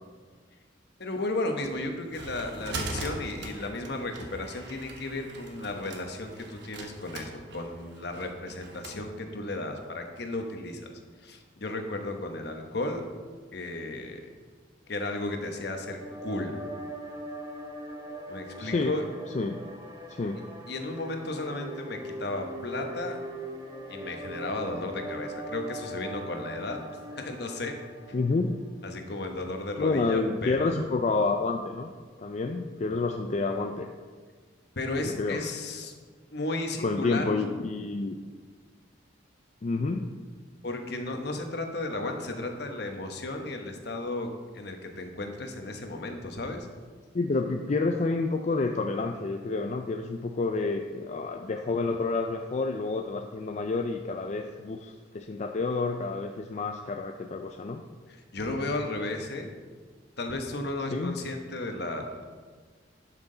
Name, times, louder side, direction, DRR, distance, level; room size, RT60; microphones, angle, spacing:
voice 1, 1.0-10.9 11.2-13.0 13.5-14.2 14.9-16.5 18.3-19.0 20.7-23.2 23.9-26.8 27.1-27.7 28.8-30.7 34.8-35.9 36.3-37.3 40.6-44.3 44.5-46.7 58.1-59.5 60.2-62.2, left 2 dB, 60° left, 4 dB, 1.1 m, -34 dB
sound 1, 1.6-9.0, right 2 dB, 65° right, 1.2 m, -41 dB
sound 2, 15.4-28.8, right 1 dB, 20° right, 0.7 m, -41 dB
voice 2, 18.6-19.0 19.3-19.6 20.1-20.4 28.1-28.6 29.8-31.9 32.2-33.9 35.0-35.4 36.8-38.2 39.6-40.1 47.1-57.8 60.9-61.2, left 3 dB, 40° left, 4 dB, 0.4 m, -29 dB
11.0 x 6.0 x 3.9 m, 1.5 s
head